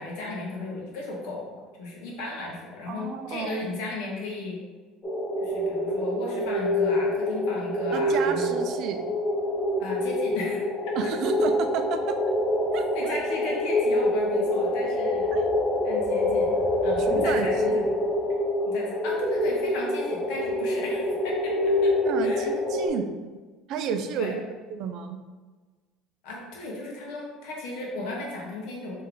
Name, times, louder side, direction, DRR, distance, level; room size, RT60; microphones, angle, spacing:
voice 1, 0.0-4.6 5.4-8.6 9.8-11.0 12.9-15.3 15.8-16.5 16.8-17.7 18.6-21.9 22.2-22.5 24.2-24.3 26.2-29.0, left 2 dB, 75° left, -2 dB, 1.2 m, -35 dB
voice 2, 2.9-3.7 7.9-9.1 11.0-12.3 12.7-13.1 15.3-15.5 17.0-17.9 22.0-23.1 23.7-24.4 24.7-25.2, right 7 dB, 55° right, 8 dB, 0.4 m, -32 dB
sound 1, 5.0-22.9, left 1 dB, 20° left, 1.1 m, -26 dB
3.5 x 3.2 x 3.8 m, 1.4 s
cardioid pair, 135°, 0 cm